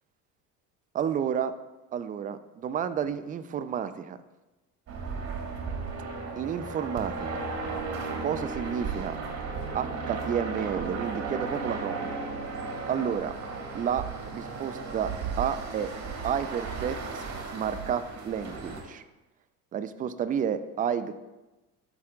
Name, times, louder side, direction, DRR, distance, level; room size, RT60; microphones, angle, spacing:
voice 1, 0.9-1.5 1.9-4.2 6.4-7.4 8.2-9.2 9.7-12.1 12.9-13.3 13.7-15.9 16.2-17.2 17.5-19.0 19.7-21.2, right 8 dB, 20° right, 12 dB, 0.4 m, -31 dB
sound 1, 4.9-18.8, right 4 dB, 35° right, 2.5 m, -35 dB
12.5 x 6.0 x 2.5 m, 1.1 s
hypercardioid pair, 65°, 47 cm